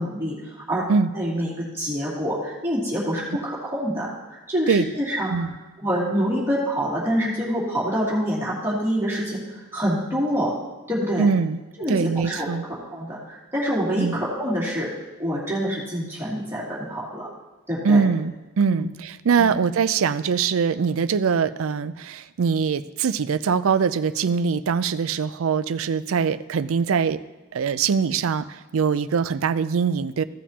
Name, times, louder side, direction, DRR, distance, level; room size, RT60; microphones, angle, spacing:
voice 1, 0.0-0.8 1.1-5.3 5.8-10.5 10.9-11.3 11.8-14.9 15.2-17.3 17.7-18.0 18.7-18.9 19.4-19.5, equal, 10° right, -8 dB, 2.6 m, -26 dB
voice 2, 11.2-11.6 11.9-12.6 14.0-14.2 17.8-27.2 27.5-30.2, right 5 dB, 65° right, 13 dB, 0.4 m, -22 dB
15.5 x 7.2 x 2.9 m, 1.1 s
head